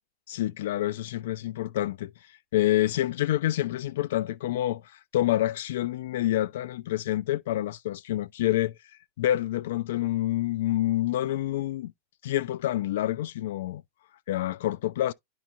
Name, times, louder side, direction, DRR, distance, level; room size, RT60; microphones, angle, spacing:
voice 1, 0.3-8.8 9.2-11.9 12.2-13.8 14.3-15.1, left 14 dB, 55° left, 0.3 m, -27 dB
11.0 x 4.6 x 2.5 m
figure-of-eight pair, 90°, 0 cm